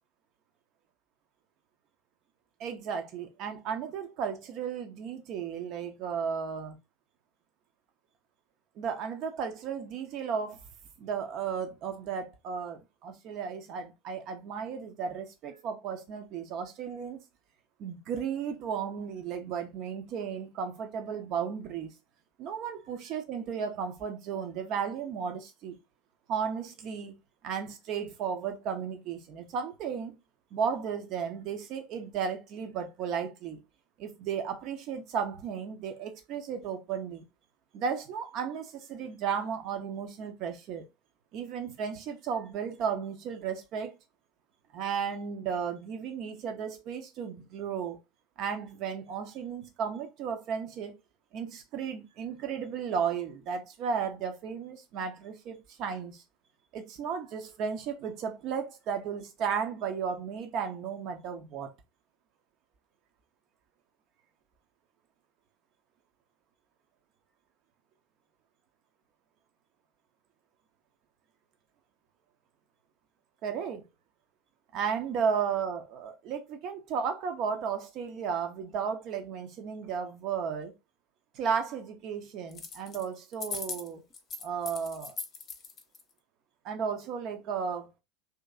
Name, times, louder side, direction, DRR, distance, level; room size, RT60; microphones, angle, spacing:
voice 1, 2.6-6.8 8.8-10.6 11.0-17.2 17.8-21.9 22.4-25.8 26.3-27.1 27.4-30.2 30.5-33.6 34.0-37.2 37.7-40.8 41.3-43.9 44.7-48.0 48.4-50.9 51.3-56.2 56.7-61.7 73.4-73.8 74.7-80.7 81.3-84.0 84.4-85.2 86.6-87.9, right 7 dB, 45° right, 0.8 m, -34 dB
sound 1, 82.5-83.0 83.3-86.0, left 4 dB, 35° left, 0.8 m, -39 dB
3.0 x 2.9 x 3.7 m
figure-of-eight pair, 75°, 0 cm